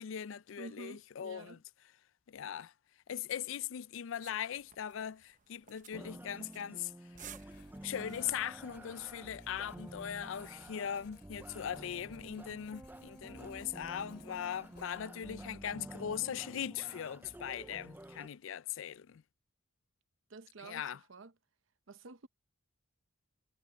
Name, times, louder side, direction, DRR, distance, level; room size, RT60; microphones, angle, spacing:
voice 1, 0.0-1.6 2.3-2.7 3.1-6.9 7.2-7.5 7.8-19.2 20.6-21.0, left 9 dB, 65° left, 0.4 m, -40 dB
voice 2, 0.6-1.6 20.3-21.3 21.9-22.3, right 3 dB, 65° right, 0.8 m, -50 dB
sound 1, 4.2-11.1, right 9 dB, 35° right, 0.9 m, -59 dB
sound 2, 5.9-18.3, right 1 dB, 10° right, 0.4 m, -50 dB
Writing, 7.1-15.3, left 2 dB, 50° left, 3.4 m, -62 dB
head